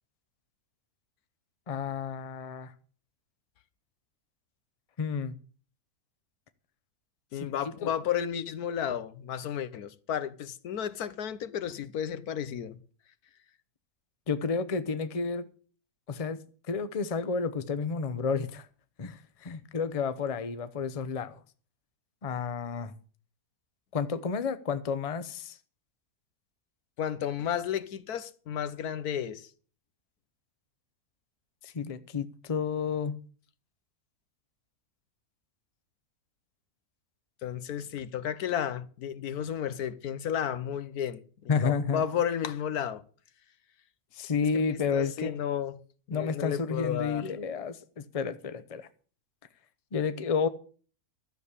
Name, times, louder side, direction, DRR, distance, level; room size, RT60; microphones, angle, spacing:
voice 1, 1.7-2.7 5.0-5.3 7.3-7.5 7.8-7.9 14.3-15.5 16.1-16.4 16.7-18.7 19.0-21.4 22.2-22.9 23.9-25.6 31.6-33.2 41.5-42.0 44.1-45.4 46.1-48.9 49.9-50.5, left 5 dB, 30° left, 0.7 m, -31 dB
voice 2, 7.3-12.8 27.0-29.5 37.4-43.0 44.5-45.7 46.1-47.3, left 9 dB, 85° left, 1.4 m, -33 dB
13.0 x 7.3 x 8.3 m
omnidirectional pair, 1.6 m